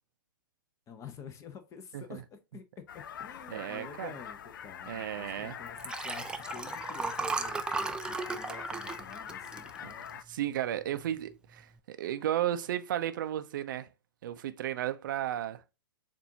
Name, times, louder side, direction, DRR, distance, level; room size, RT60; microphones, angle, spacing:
voice 1, 0.9-10.1, left 6 dB, 25° left, 0.9 m, -49 dB
sound 1, 2.9-10.2, left 8 dB, 65° left, 0.5 m, -44 dB
voice 2, 3.5-4.1 4.9-5.6 10.1-13.9 14.2-15.6, right 11 dB, 60° right, 0.5 m, -34 dB
Liquid, 5.7-10.3 10.8-11.1 11.3-11.4, right 4 dB, 5° right, 0.4 m, -36 dB
7.0 x 2.6 x 2.8 m
hypercardioid pair, 110°, 12 cm